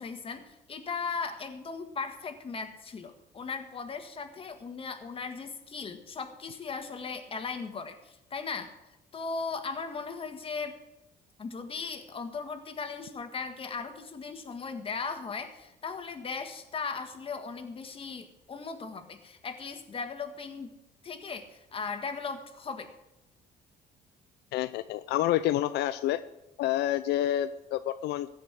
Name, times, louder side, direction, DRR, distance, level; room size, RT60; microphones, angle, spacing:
voice 1, 0.0-8.7 9.1-10.8 11.4-20.7 21.0-22.9, left 5 dB, 35° left, 7 dB, 1.7 m, -37 dB
voice 2, 24.5-26.2 26.6-28.3, left 13 dB, 80° left, 12 dB, 0.5 m, -28 dB
15.5 x 5.4 x 9.7 m, 0.91 s
cardioid pair, 110°, 17 cm